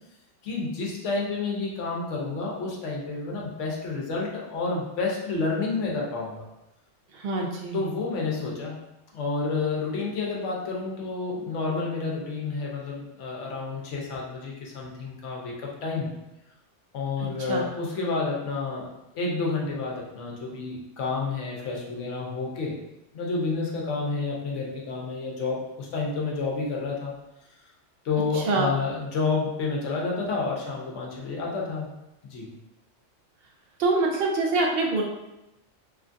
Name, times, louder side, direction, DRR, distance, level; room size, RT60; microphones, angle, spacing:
voice 1, 0.4-6.5 7.7-8.8 9.1-16.1 16.9-18.9 19.1-22.7 23.1-27.1 28.0-31.9 32.2-32.5, left 4 dB, 75° left, -2 dB, 1.0 m, -30 dB
voice 2, 7.1-7.8 17.5-17.6 28.5-28.7 33.8-35.0, right 3 dB, 60° right, 0 dB, 0.7 m, -24 dB
3.1 x 2.4 x 2.5 m, 0.93 s
omnidirectional pair, 1.3 m